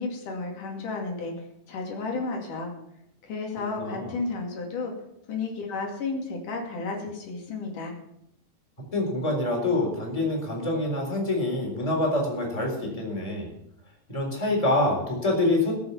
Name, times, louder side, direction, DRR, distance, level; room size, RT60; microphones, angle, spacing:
voice 1, 0.0-1.3 1.7-2.7 3.2-4.9 5.3-7.9, left 3 dB, 80° left, 1 dB, 4.0 m, -32 dB
voice 2, 3.8-4.1 8.9-13.5 14.1-15.7, left 2 dB, 10° left, 0 dB, 3.8 m, -26 dB
20.5 x 6.9 x 7.1 m, 0.79 s
omnidirectional pair, 3.6 m